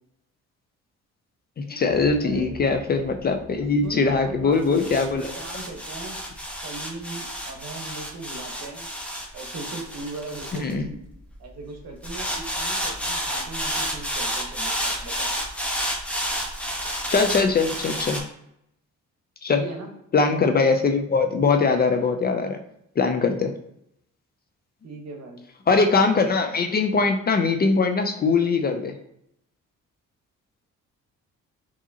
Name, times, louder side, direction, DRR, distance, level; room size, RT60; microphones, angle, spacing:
voice 1, 1.6-5.3 10.5-10.9 17.1-18.2 19.4-19.6 20.1-22.6 23.0-23.5 25.7-28.9, left 4 dB, 30° left, 6 dB, 0.4 m, -21 dB
sound 1, 1.9-11.3 12.0-18.2, equal, 5° left, 0.8 m, -31 dB
voice 2, 2.2-2.5 3.8-6.2 6.6-8.9 9.3-11.0 11.4-15.3 19.5-19.9 24.8-25.4, right 3 dB, 60° right, 2 dB, 1.0 m, -38 dB
4.6 x 2.8 x 2.7 m, 0.75 s
cardioid pair, 90°, 30 cm